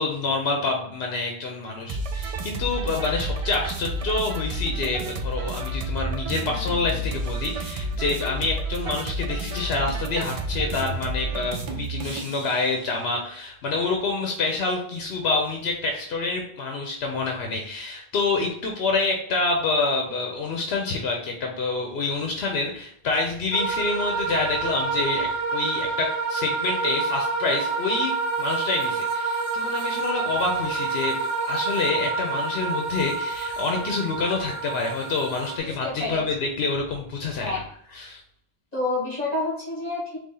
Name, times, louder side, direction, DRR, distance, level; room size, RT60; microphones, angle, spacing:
voice 1, 0.0-31.2 31.5-37.5 37.9-38.2, left 3 dB, 85° left, 1 dB, 0.9 m, -27 dB
sound 1, 1.9-12.5, right 2 dB, 50° right, 0.4 m, -30 dB
sound 2, 23.5-35.6, right 4 dB, 35° right, 1.1 m, -28 dB
voice 2, 35.6-36.2 37.4-37.6 38.7-40.2, left 2 dB, 40° left, -6 dB, 1.5 m, -28 dB
4.2 x 3.0 x 3.8 m, 0.66 s
omnidirectional pair, 1.0 m